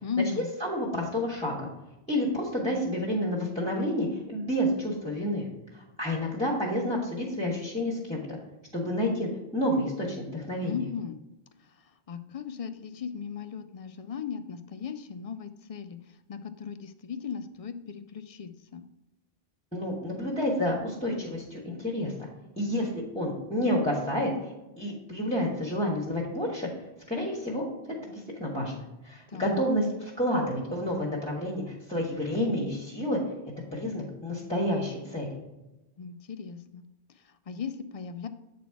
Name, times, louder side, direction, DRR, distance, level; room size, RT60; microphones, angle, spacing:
voice 1, 0.0-0.5 10.6-11.2 11.7-18.8 29.3-29.6 36.0-36.8 37.1-38.3, left 6 dB, 55° left, 10 dB, 0.4 m, -37 dB
voice 2, 0.6-1.7 2.1-5.5 5.7-8.4 8.7-10.8 19.7-22.3 22.6-27.7 28.0-33.2 33.7-35.3, left 1 dB, 5° left, -3 dB, 1.2 m, -29 dB
8.3 x 4.1 x 4.7 m, 0.98 s
omnidirectional pair, 1.1 m